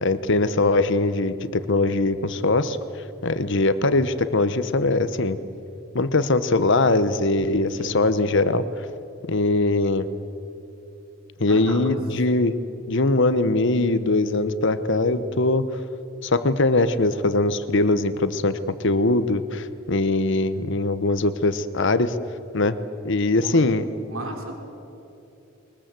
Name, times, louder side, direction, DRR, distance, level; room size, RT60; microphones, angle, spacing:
voice 1, 0.0-2.8 3.2-5.4 5.9-8.6 9.3-10.1 11.4-12.5 12.9-15.7 16.2-22.1 22.5-22.8 23.0-23.9, left 2 dB, 60° left, 13 dB, 1.0 m, -21 dB
voice 2, 11.5-12.0 23.4-23.6 24.1-24.6, right 2 dB, 80° right, 3 dB, 3.2 m, -36 dB
22.0 x 21.0 x 7.6 m, 2.9 s
head